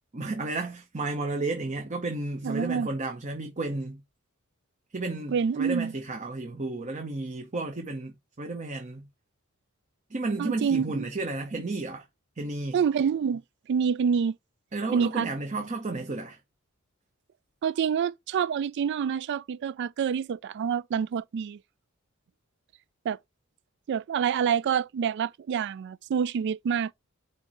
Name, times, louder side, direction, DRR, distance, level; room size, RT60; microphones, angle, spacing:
voice 1, 0.1-4.0 4.9-9.1 10.1-12.0 12.4-12.8 14.7-16.4, right 2 dB, 35° right, 0.9 m, -32 dB
voice 2, 2.4-2.9 5.3-5.9 10.4-11.1 12.7-13.4 13.7-14.4 14.9-15.3 17.6-21.6 23.1-23.2 23.9-26.9, right 7 dB, 55° right, 0.3 m, -27 dB
4.8 x 4.5 x 4.3 m
head